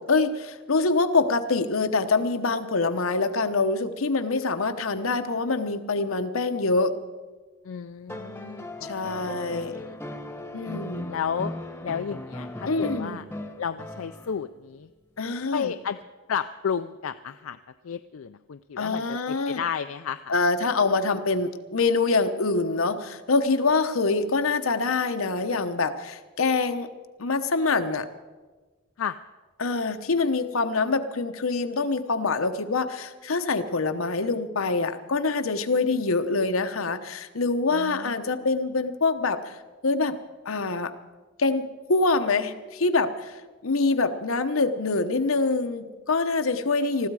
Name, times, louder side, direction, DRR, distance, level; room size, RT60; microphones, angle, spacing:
voice 1, 0.0-6.9 8.8-9.8 10.5-11.1 12.7-13.2 15.2-15.7 18.8-19.6 20.3-26.9 27.2-28.1 29.6-40.2 40.4-40.9 41.4-47.1, left 3 dB, 90° left, 8 dB, 1.0 m, -25 dB
voice 2, 7.6-10.0 11.1-11.5 11.8-13.2 13.6-14.9 15.5-16.0 16.3-17.6 17.8-20.4 29.0-29.2 37.7-38.1, left 7 dB, 75° left, 10 dB, 0.4 m, -32 dB
sound 1, 8.1-14.5 16.0-16.1, left 1 dB, 10° left, 1.0 m, -38 dB
20.5 x 14.5 x 4.8 m, 1.3 s
head